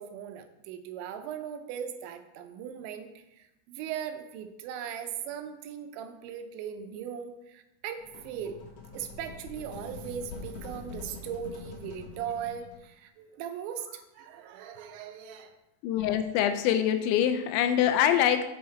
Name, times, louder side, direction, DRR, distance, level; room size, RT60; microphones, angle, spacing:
voice 1, 0.0-8.6 8.9-15.5, right 8 dB, 85° right, 7 dB, 3.0 m, -39 dB
sound 1, 8.0-12.8, left 4 dB, 65° left, 1.5 m, -44 dB
voice 2, 15.8-18.5, left 10 dB, 90° left, 9 dB, 3.0 m, -24 dB
7.9 x 5.6 x 4.4 m, 0.93 s
omnidirectional pair, 5.1 m